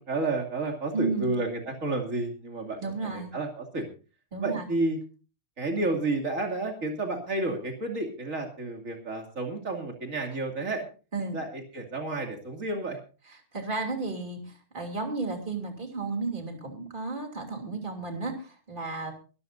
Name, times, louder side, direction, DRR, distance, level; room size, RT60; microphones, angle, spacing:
voice 1, 0.0-3.8 4.4-5.0 5.6-10.8 11.3-13.0, right 2 dB, 80° right, 2 dB, 3.0 m, -31 dB
voice 2, 0.9-1.3 2.8-3.3 4.3-4.7 11.1-11.4 13.5-19.1, right 3 dB, 40° right, 3 dB, 3.2 m, -33 dB
23.5 x 13.0 x 2.6 m, 0.35 s
omnidirectional pair, 1.4 m